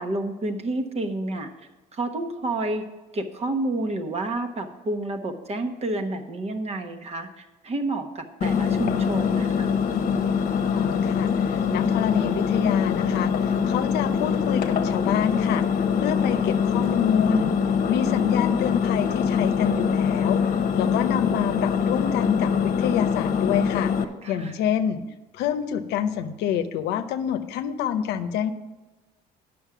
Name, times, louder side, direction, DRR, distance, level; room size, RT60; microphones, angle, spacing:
voice 1, 0.0-1.5 1.9-2.8 3.1-9.7 24.2-24.5, right 2 dB, 40° right, 6 dB, 1.1 m, -29 dB
Engine, 8.4-24.0, left 6 dB, 55° left, 1.0 m, -23 dB
voice 2, 10.7-15.6 16.0-17.5 17.9-20.4 20.8-23.9 24.3-25.0 25.3-28.5, left 8 dB, 85° left, 9 dB, 0.7 m, -27 dB
9.1 x 6.3 x 6.0 m, 1.2 s
cardioid pair, 110°, 17 cm